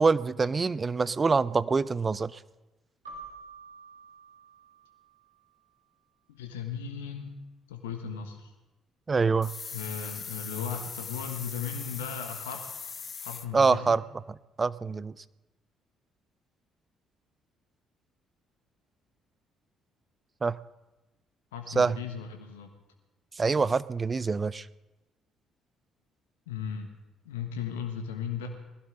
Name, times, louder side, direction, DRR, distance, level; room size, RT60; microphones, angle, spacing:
voice 1, 0.0-2.4 9.1-9.5 13.5-14.0 14.6-15.1 20.4-20.6 21.7-22.0 23.4-24.7, right 4 dB, 30° right, 18 dB, 0.5 m, -25 dB
Keyboard (musical), 3.0-5.6, right 3 dB, 80° right, 4.1 m, -48 dB
voice 2, 6.4-7.3 7.7-8.5 9.7-12.8 13.2-14.0 21.5-22.7 26.5-26.9 27.2-28.5, left 7 dB, 75° left, 5 dB, 1.4 m, -36 dB
sound 1, 9.4-13.5, left 6 dB, 40° left, 1.0 m, -40 dB
21.5 x 15.5 x 3.9 m, 1.1 s
figure-of-eight pair, 45°, 0 cm